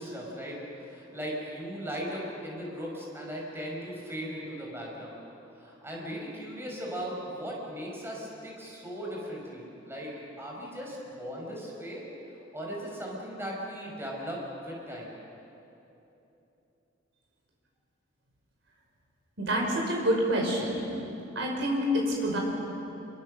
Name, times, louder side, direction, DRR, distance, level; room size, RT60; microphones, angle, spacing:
voice 1, 0.0-5.2 5.5-15.1, equal, 10° right, -2 dB, 5.4 m, -38 dB
voice 2, 19.4-20.9 21.3-22.4, equal, 60° right, -1 dB, 5.8 m, -27 dB
27.0 x 24.5 x 6.6 m, 3.0 s
head